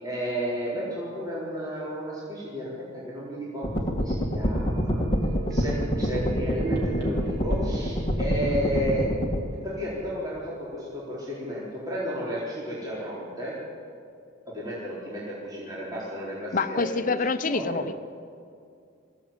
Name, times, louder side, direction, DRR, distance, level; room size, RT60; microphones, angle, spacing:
voice 1, 0.0-5.0 5.5-9.1 9.6-13.5 14.5-17.2 17.5-17.8, equal, 20° right, -8 dB, 4.2 m, -33 dB
sound 1, 3.6-9.4, equal, 25° left, 2.2 m, -26 dB
sound 2, 4.4-10.1 10.5-10.6, right 6 dB, 55° right, 5.1 m, -39 dB
voice 2, 16.5-17.9, left 3 dB, 45° left, 9 dB, 0.8 m, -26 dB
21.5 x 16.5 x 8.9 m, 2.4 s
head